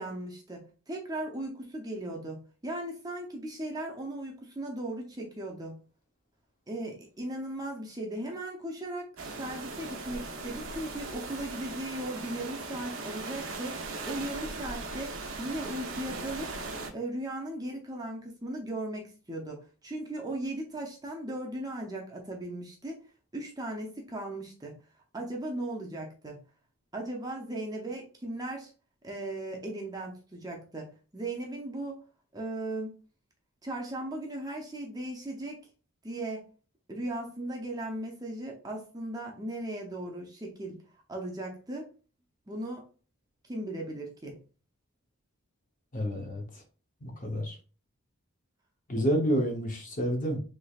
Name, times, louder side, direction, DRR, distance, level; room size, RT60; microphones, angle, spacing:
voice 1, 0.0-5.7 6.7-9.1 9.4-16.5 16.9-23.0 23.3-24.8 25.1-26.4 26.9-28.7 29.0-32.0 32.3-33.0 33.6-35.7 36.0-36.5 36.9-40.8 41.1-41.9 42.5-42.9 43.5-44.4, right 1 dB, 15° right, 0 dB, 0.5 m, -37 dB
sound 1, 9.2-16.9, right 3 dB, 70° right, 0.7 m, -39 dB
voice 2, 45.9-46.6 47.0-47.6 48.9-50.4, equal, 35° left, 3 dB, 0.7 m, -29 dB
3.3 x 3.2 x 2.3 m, 0.35 s
head